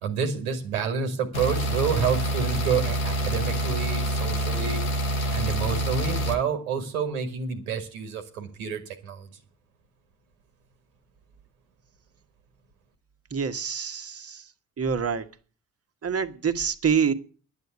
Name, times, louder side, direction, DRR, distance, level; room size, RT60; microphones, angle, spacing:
voice 1, 0.0-4.8 5.3-9.3, right 6 dB, 85° right, 6 dB, 1.7 m, -29 dB
sound 1, 1.3-6.3, right 1 dB, 90° left, 1.5 m, -26 dB
voice 2, 13.3-14.4 14.8-15.2 16.0-17.1, right 6 dB, 35° right, 10 dB, 1.4 m, -26 dB
11.0 x 9.4 x 8.0 m, 0.39 s
hypercardioid pair, 45°, 42 cm